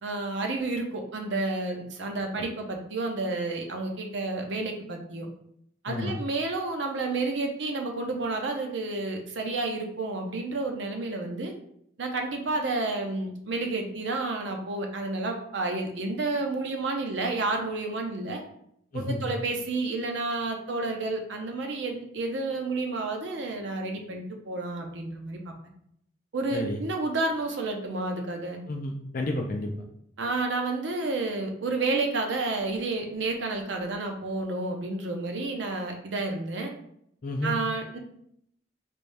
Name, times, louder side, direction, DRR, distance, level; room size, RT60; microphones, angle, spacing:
voice 1, 0.0-5.3 5.8-11.5 12.0-18.4 18.9-25.5 26.3-28.6 30.2-36.7 37.4-38.0, right 3 dB, 75° right, 3 dB, 0.6 m, -30 dB
voice 2, 18.9-19.3 26.5-26.8 28.7-29.7 37.2-37.6, left 1 dB, 45° left, 1 dB, 0.4 m, -31 dB
3.4 x 3.3 x 2.6 m, 0.71 s
head